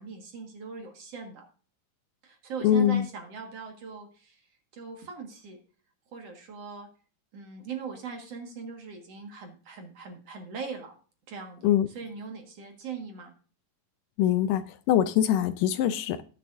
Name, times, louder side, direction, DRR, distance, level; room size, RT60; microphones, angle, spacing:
voice 1, 0.0-1.4 2.2-5.6 6.1-6.9 7.3-10.9 11.3-13.3, right 5 dB, 55° right, 3 dB, 2.4 m, -40 dB
voice 2, 2.6-3.1 11.6-11.9 14.2-16.2, left 10 dB, 80° left, 12 dB, 2.1 m, -23 dB
19.5 x 6.7 x 2.6 m, 0.40 s
omnidirectional pair, 3.9 m